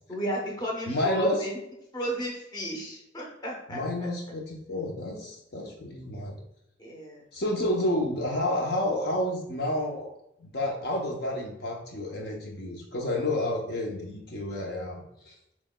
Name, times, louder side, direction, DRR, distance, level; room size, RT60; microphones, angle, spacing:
voice 1, 0.1-1.6 1.9-4.1 6.8-7.2, equal, 20° left, -1 dB, 0.8 m, -33 dB
voice 2, 0.9-1.5 3.7-6.4 7.3-10.1 10.4-15.0 15.3-15.4, left 1 dB, 55° left, 0 dB, 0.7 m, -30 dB
7.3 x 3.1 x 2.2 m, 0.81 s
head